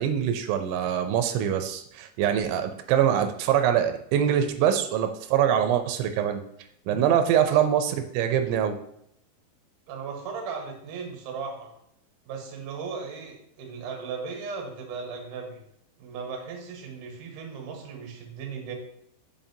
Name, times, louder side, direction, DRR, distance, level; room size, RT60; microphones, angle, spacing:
voice 1, 0.0-6.4 6.9-8.8, right 9 dB, 85° right, 8 dB, 3.0 m, -24 dB
voice 2, 9.9-11.7 12.3-15.6 16.0-18.7, right 5 dB, 65° right, 1 dB, 2.1 m, -37 dB
7.1 x 5.3 x 2.7 m, 0.73 s
omnidirectional pair, 5.3 m